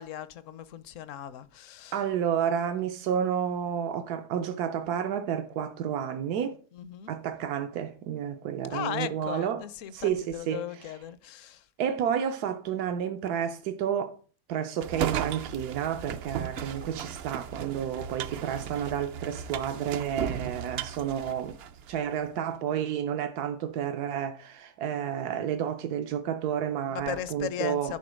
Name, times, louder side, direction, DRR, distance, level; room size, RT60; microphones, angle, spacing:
voice 1, 0.0-2.0 6.8-7.1 8.7-11.6 16.6-16.7 26.9-28.0, left 10 dB, 65° left, 0.9 m, -37 dB
voice 2, 1.9-6.6 7.1-9.6 9.9-11.0 11.8-14.2 14.5-21.6 21.9-27.9, right 8 dB, 85° right, 1.3 m, -30 dB
sound 1, 14.8-22.0, right 8 dB, 70° right, 0.5 m, -36 dB
11.0 x 3.8 x 6.3 m
omnidirectional pair, 1.6 m